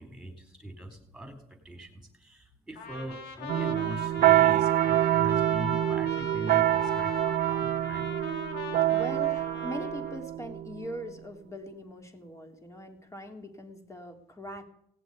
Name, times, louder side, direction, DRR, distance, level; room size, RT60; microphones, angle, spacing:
voice 1, 0.0-8.1, equal, ahead, 6 dB, 4.1 m, -41 dB
Trumpet, 2.8-10.2, left 5 dB, 80° left, 2.8 m, -41 dB
sound 1, 3.5-11.0, right 13 dB, 55° right, 0.7 m, -26 dB
voice 2, 8.9-14.6, equal, 15° left, 5 dB, 3.1 m, -41 dB
18.0 x 7.7 x 9.5 m, 0.74 s
cardioid pair, 110°, 17 cm